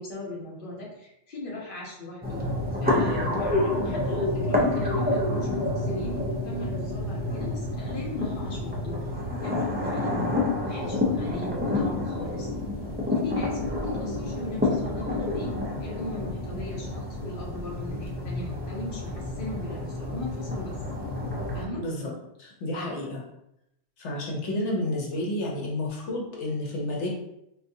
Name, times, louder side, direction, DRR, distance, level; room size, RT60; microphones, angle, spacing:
voice 1, 0.0-2.4 2.8-9.0 9.4-10.3 10.6-12.5 13.1-15.5 15.8-20.7 21.5-21.8 22.7-22.9, left 1 dB, 50° left, -4 dB, 1.0 m, -38 dB
sound 1, 2.2-21.7, left 2 dB, 15° right, 0.3 m, -29 dB
voice 2, 21.8-22.1 22.4-23.2 24.0-27.1, left 1 dB, 90° left, -2 dB, 1.0 m, -30 dB
3.7 x 2.3 x 2.6 m, 0.82 s
omnidirectional pair, 1.2 m